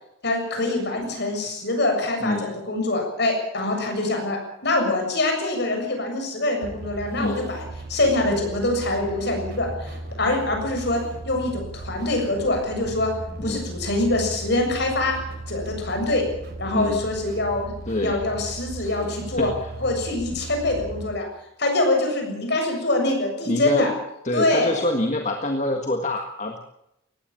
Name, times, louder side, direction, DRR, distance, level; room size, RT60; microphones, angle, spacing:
voice 1, 0.2-7.6 7.9-13.1 13.4-15.2 15.5-16.2 16.6-17.7 18.0-19.5 19.8-21.3 21.6-23.9 24.3-24.8, left 2 dB, 55° left, 3 dB, 7.3 m, -24 dB
voice 2, 2.2-2.5 7.2-7.5 13.4-13.7 16.7-17.0 17.9-18.2 18.8-18.9 19.4-19.5 23.5-23.9 24.2-26.6, left 1 dB, 35° left, 4 dB, 1.7 m, -25 dB
sound 1, 6.6-21.1, right 2 dB, 50° right, 3.7 m, -37 dB
19.0 x 16.0 x 8.9 m, 0.83 s
head